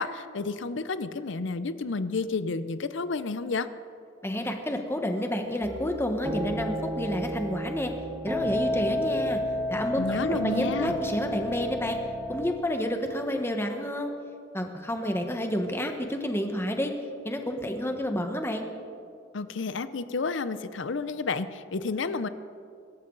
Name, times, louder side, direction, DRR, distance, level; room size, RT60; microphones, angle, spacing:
voice 1, 0.0-3.7 10.0-11.0 19.3-22.3, left 4 dB, 70° left, 13 dB, 0.6 m, -31 dB
voice 2, 4.2-7.9 8.2-9.4 9.7-12.0 12.3-14.1 14.5-16.9 17.2-18.7, left 1 dB, 15° left, 4 dB, 1.3 m, -30 dB
sound 1, 5.6-12.5, equal, 10° right, 1.2 m, -31 dB
24.0 x 13.0 x 4.0 m, 2.4 s
head